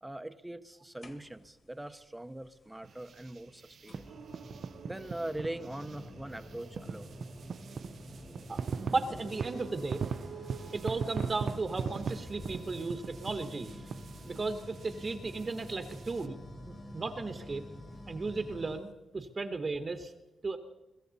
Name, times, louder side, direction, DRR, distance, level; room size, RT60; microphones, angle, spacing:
voice 1, 0.0-4.2 4.9-7.2, right 1 dB, 5° right, 12 dB, 0.7 m, -42 dB
sound 1, 1.0-1.6 3.0-3.1 3.9-18.9, left 1 dB, 30° left, 1.6 m, -48 dB
sound 2, 2.8-16.3, right 6 dB, 45° right, 0.5 m, -41 dB
sound 3, 4.0-11.2, right 6 dB, 65° right, 1.5 m, -51 dB
voice 2, 8.5-10.0 10.7-13.9 14.2-17.7 18.1-20.1 20.4-20.6, right 3 dB, 30° right, 8 dB, 1.1 m, -35 dB
23.0 x 15.0 x 4.0 m, 1.0 s
wide cardioid pair, 165°, 0 cm